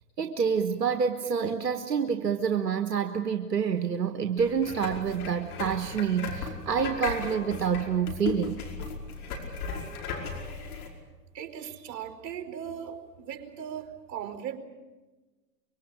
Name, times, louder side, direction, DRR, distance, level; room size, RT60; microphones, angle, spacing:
voice 1, 0.2-8.8, right 7 dB, 85° right, 7 dB, 1.5 m, -28 dB
sound 1, 4.4-10.9, left 5 dB, 65° left, 5.3 m, -36 dB
voice 2, 11.3-14.6, right 9 dB, 50° right, 6 dB, 4.6 m, -38 dB
24.5 x 23.5 x 8.8 m, 1.2 s
hypercardioid pair, 110°, 48 cm